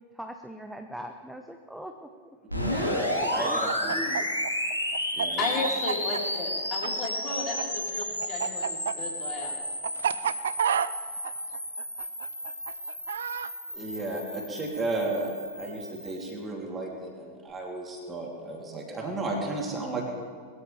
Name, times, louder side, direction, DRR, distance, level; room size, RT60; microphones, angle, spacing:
voice 1, 0.1-2.3 3.1-3.6 3.8-4.3, equal, ahead, 6 dB, 0.9 m, -40 dB
sound 1, 2.5-16.3, left 1 dB, 90° left, 2.4 m, -32 dB
voice 2, 2.5-4.0 5.1-5.5 13.7-20.1, right 2 dB, 20° right, -1 dB, 3.4 m, -33 dB
Chicken rooster, 3.2-7.6 7.9-13.5, right 8 dB, 65° right, 0.4 m, -30 dB
voice 3, 5.3-9.6, left 4 dB, 35° left, -3 dB, 4.6 m, -34 dB
21.5 x 14.5 x 3.5 m, 2.1 s
figure-of-eight pair, 90°, 0 cm